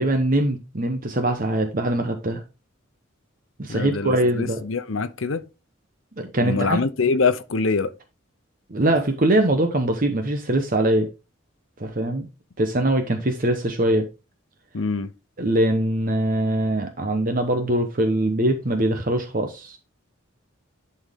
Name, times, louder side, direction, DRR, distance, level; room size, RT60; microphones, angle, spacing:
voice 1, 0.0-2.4 3.6-4.7 6.2-6.8 8.7-11.1 11.8-12.3 12.6-14.0 15.4-19.8, right 1 dB, 45° right, 1.0 m, -22 dB
voice 2, 3.7-5.4 6.4-7.9 14.7-15.1, left 4 dB, 75° left, 0.7 m, -24 dB
11.0 x 4.4 x 3.6 m
head